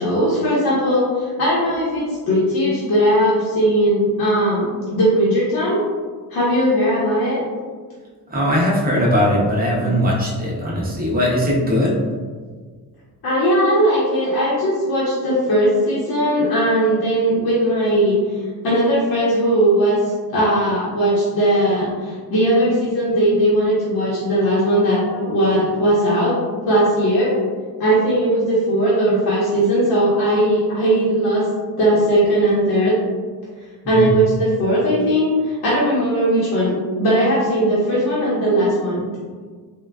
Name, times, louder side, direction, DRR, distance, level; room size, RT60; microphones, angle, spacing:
voice 1, 0.0-5.8 6.3-7.4 9.8-9.9 13.2-20.0 20.3-27.3 27.8-31.5 31.8-33.0 33.9-39.0, right 1 dB, 65° left, -9 dB, 0.9 m, -18 dB
voice 2, 8.3-12.0 33.8-34.2, equal, 25° right, -4 dB, 0.6 m, -19 dB
3.7 x 2.2 x 2.2 m, 1.5 s
wide cardioid pair, 140°, 39 cm